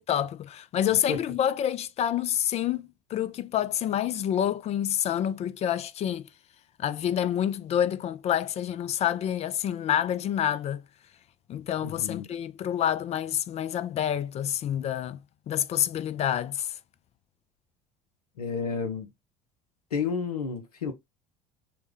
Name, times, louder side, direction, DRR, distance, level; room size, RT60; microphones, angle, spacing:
voice 1, 0.0-6.3 6.8-10.8 11.5-15.2 15.5-16.7, left 10 dB, 35° left, 0.4 m, -28 dB
voice 2, 11.8-12.2 18.4-19.1 19.9-20.9, left 5 dB, 85° left, 0.5 m, -31 dB
3.3 x 2.1 x 3.2 m
figure-of-eight pair, 65°, 19 cm